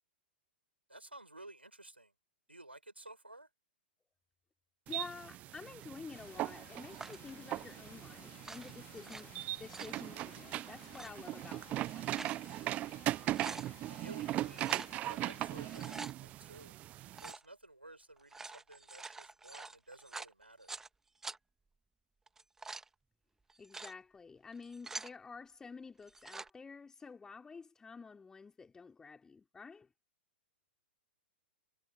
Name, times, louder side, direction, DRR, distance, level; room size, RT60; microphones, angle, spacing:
voice 1, 0.9-2.1 2.5-3.5 13.9-14.8 15.0-16.8 17.2-20.7, right 2 dB, 85° right, 4.9 m, -54 dB
voice 2, 4.9-9.3 9.6-12.4 23.6-29.9, left 5 dB, 10° left, 3.1 m, -50 dB
sound 1, 4.9-17.3, right 15 dB, 25° right, 0.4 m, -39 dB
sound 2, 6.1-16.1, left 15 dB, 25° left, 4.0 m, -59 dB
sound 3, 7.0-7.3 8.3-9.2 9.5-10.0 10.8-11.1 11.8-12.4 12.8-12.9 13.2-13.7 14.5-14.9 15.6-16.1 17.1-17.5 18.2-20.9 21.2-21.4 22.3-22.9 23.5-23.9 24.5-25.1 26.0-26.5, right 3 dB, 5° right, 1.6 m, -46 dB
figure-of-eight pair, 110°, 6 cm